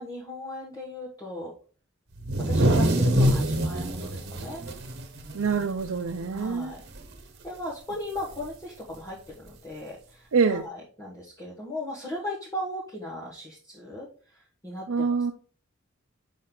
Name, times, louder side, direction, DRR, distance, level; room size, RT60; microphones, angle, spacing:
voice 1, 0.0-1.5 2.5-4.6 5.5-5.6 6.3-6.8 7.4-14.1 14.3-15.0, left 1 dB, 15° left, -5 dB, 1.4 m, -37 dB
sound 1, 2.2-5.9 6.2-6.4 6.7-7.2 8.3-8.4 9.5-9.6, equal, 55° right, 1.2 m, -25 dB
voice 2, 5.3-6.7 10.3-10.7 14.9-15.3, right 5 dB, 85° right, 3 dB, 0.6 m, -25 dB
6.5 x 5.4 x 3.8 m, 0.40 s
head